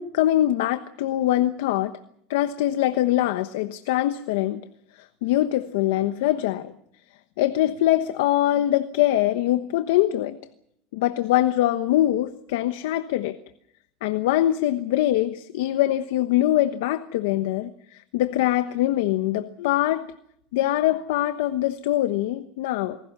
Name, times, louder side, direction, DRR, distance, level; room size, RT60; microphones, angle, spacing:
voice 1, 0.0-1.9 2.3-4.6 5.0-6.7 7.4-10.4 10.9-13.4 14.0-20.1 20.5-23.0, left 14 dB, 85° left, 10 dB, 1.1 m, -23 dB
28.0 x 20.0 x 6.1 m, 0.72 s
supercardioid pair, 125°, 0 cm